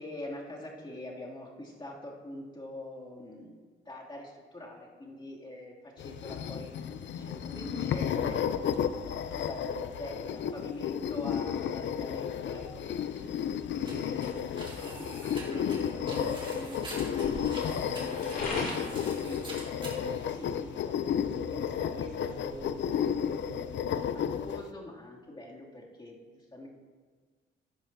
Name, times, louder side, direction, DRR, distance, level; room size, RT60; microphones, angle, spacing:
voice 1, 0.0-8.7 9.1-12.6 13.9-19.4 19.9-24.1 24.4-26.7, left 1 dB, 20° left, -4 dB, 2.7 m, -44 dB
sound 1, 6.0-24.7, left 8 dB, 60° left, 0.5 m, -33 dB
sound 2, 11.9-24.0, left 2 dB, 45° left, 3.1 m, -46 dB
sound 3, 13.1-20.9, right 2 dB, 25° right, 2.7 m, -46 dB
15.0 x 10.5 x 2.8 m, 1.5 s
cardioid pair, 90°, 21 cm